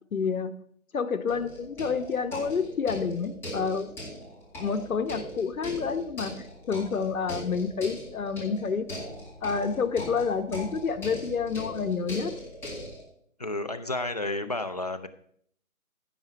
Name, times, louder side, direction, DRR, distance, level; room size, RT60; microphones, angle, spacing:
voice 1, 0.1-0.5 0.9-4.0 4.6-8.9 9.4-12.3, left 5 dB, 75° left, 9 dB, 1.1 m, -29 dB
sound 1, 1.3-13.0, left 1 dB, 5° left, 2.0 m, -40 dB
voice 2, 13.4-15.1, left 2 dB, 30° left, 9 dB, 0.4 m, -31 dB
15.5 x 5.9 x 4.5 m, 0.65 s
hypercardioid pair, 155°, 42 cm